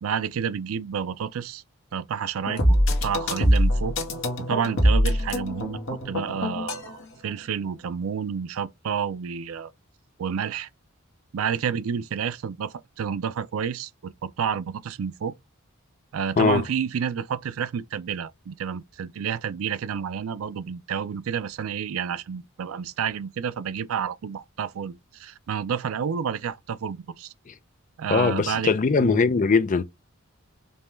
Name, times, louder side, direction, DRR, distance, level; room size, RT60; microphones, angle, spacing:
voice 1, 0.0-1.6 1.9-4.0 4.5-9.7 10.2-10.7 11.3-15.3 16.1-27.3 28.0-28.7 29.0-29.2, right 7 dB, 75° right, 0.4 m, -30 dB
sound 1, 2.5-6.9, equal, 65° left, 1.2 m, -23 dB
voice 2, 28.1-29.8, left 4 dB, 40° left, 0.4 m, -20 dB
5.3 x 2.3 x 3.0 m
head